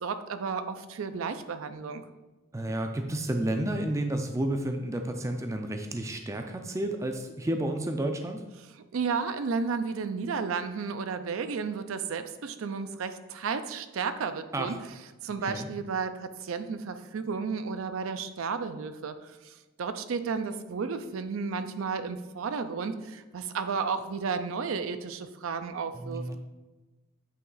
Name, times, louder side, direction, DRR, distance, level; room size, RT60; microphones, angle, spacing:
voice 1, 0.0-2.0 8.9-14.7 15.2-26.2, right 5 dB, 75° right, 10 dB, 0.4 m, -33 dB
voice 2, 2.5-8.4 14.5-14.8 15.5-15.7 25.9-26.4, right 1 dB, 15° right, 5 dB, 0.4 m, -31 dB
8.4 x 3.1 x 3.9 m, 1.2 s
head